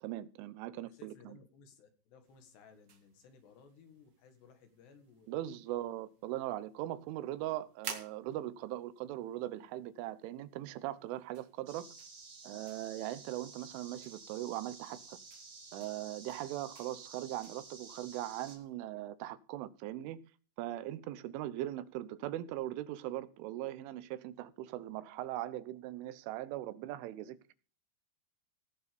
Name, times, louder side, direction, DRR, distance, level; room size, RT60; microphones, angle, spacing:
voice 1, 0.0-1.4 5.3-11.9 12.4-15.2 15.7-20.2 20.6-27.5, right 14 dB, 85° right, 3.4 m, -40 dB
voice 2, 0.8-5.5, left 5 dB, 65° left, 3.5 m, -59 dB
sound 1, 2.2-18.7, right 6 dB, 50° right, 1.9 m, -55 dB
sound 2, 11.7-18.6, right 4 dB, 35° right, 4.5 m, -52 dB
17.5 x 6.7 x 5.2 m
omnidirectional pair, 5.6 m